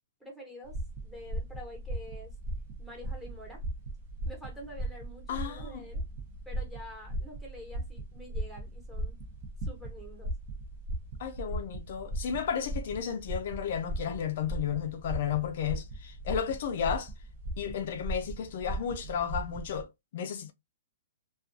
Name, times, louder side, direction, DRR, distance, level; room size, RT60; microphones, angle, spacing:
voice 1, 0.2-2.3 2.8-3.6 4.2-6.0 6.5-9.2 9.6-10.3, equal, 5° right, 1.0 m, -47 dB
sound 1, 0.6-19.8, right 1 dB, 35° right, 0.7 m, -38 dB
voice 2, 5.3-5.9 11.2-17.1 17.6-20.5, left 8 dB, 55° left, 0.4 m, -33 dB
2.3 x 2.3 x 2.5 m
hypercardioid pair, 155°, 0 cm